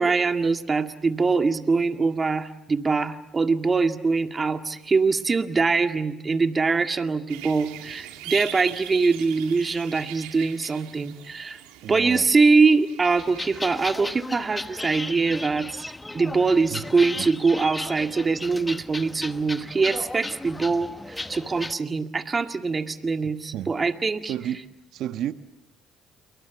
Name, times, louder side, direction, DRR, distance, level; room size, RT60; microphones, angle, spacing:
voice 1, 0.0-11.6 11.9-24.3, right 4 dB, 35° right, 7 dB, 2.0 m, -23 dB
sound 1, 7.3-14.9 15.2-15.3, right 13 dB, 90° right, 2.6 m, -42 dB
voice 2, 11.8-12.3 16.7-16.8 17.2-17.3 23.2-23.7 24.2-24.6 24.9-25.3, right 11 dB, 70° right, 10 dB, 1.3 m, -32 dB
sound 2, 13.2-21.7, left 2 dB, 15° left, 1.0 m, -35 dB
28.5 x 23.0 x 7.2 m, 0.89 s
supercardioid pair, 70°, 0 cm